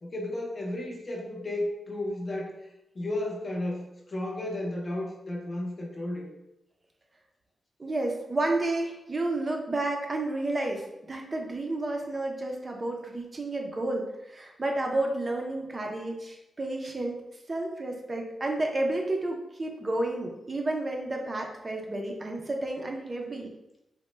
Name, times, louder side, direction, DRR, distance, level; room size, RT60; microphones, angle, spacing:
voice 1, 0.0-2.6 2.9-6.3, left 1 dB, 35° left, -1 dB, 0.5 m, -33 dB
voice 2, 7.8-17.2 17.5-23.5, right 2 dB, 30° right, 1 dB, 0.4 m, -31 dB
3.0 x 2.0 x 3.2 m, 0.90 s
wide cardioid pair, 125°, 0 cm